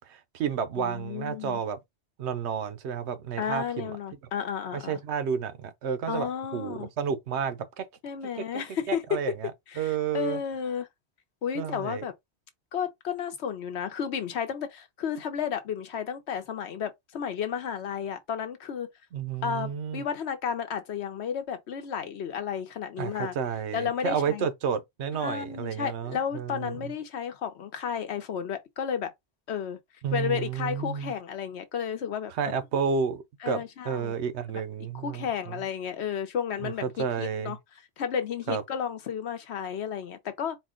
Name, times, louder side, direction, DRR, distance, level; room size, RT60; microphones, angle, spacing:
voice 1, 0.1-1.8 2.2-3.9 4.7-7.9 8.4-8.5 8.9-9.5 9.8-10.4 11.5-12.0 19.1-20.0 23.0-26.9 30.0-31.1 32.3-35.6 36.6-37.6 38.5-38.6, right 7 dB, 80° right, 0.9 m, -31 dB
voice 2, 0.8-1.6 3.4-5.0 6.1-6.9 8.0-9.0 9.7-10.9 11.4-12.1 12.7-18.9 19.4-23.3 23.7-24.5 25.1-29.1 29.5-29.8 30.1-32.3 33.4-34.2 34.9-37.6 38.0-40.6, left 7 dB, 75° left, 1.0 m, -32 dB
4.3 x 2.1 x 3.6 m
omnidirectional pair, 1.1 m